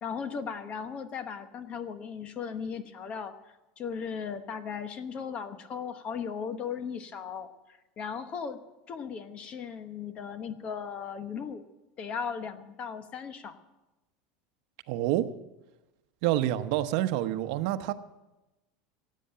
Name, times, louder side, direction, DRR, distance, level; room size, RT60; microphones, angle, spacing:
voice 1, 0.0-3.3 3.8-7.5 8.0-8.6 8.9-11.6 12.0-13.6, left 6 dB, 30° left, 11 dB, 1.0 m, -37 dB
voice 2, 14.9-15.3 16.2-17.9, right 14 dB, 60° right, 8 dB, 0.9 m, -27 dB
16.0 x 8.6 x 8.9 m, 1.0 s
supercardioid pair, 160°, 4 cm